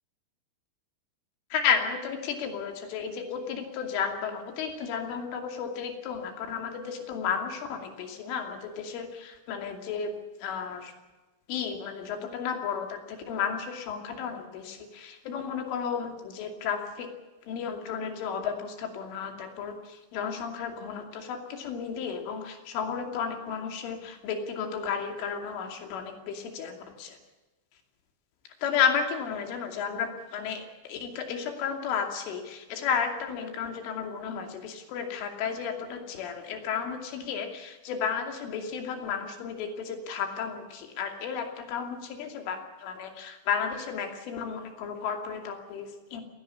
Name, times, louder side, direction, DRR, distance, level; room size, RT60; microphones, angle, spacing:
voice 1, 1.5-10.9 11.5-17.1 17.4-27.2 28.6-46.2, left 7 dB, 85° left, 5 dB, 5.2 m, -33 dB
19.5 x 17.5 x 8.5 m, 1.1 s
omnidirectional pair, 5.5 m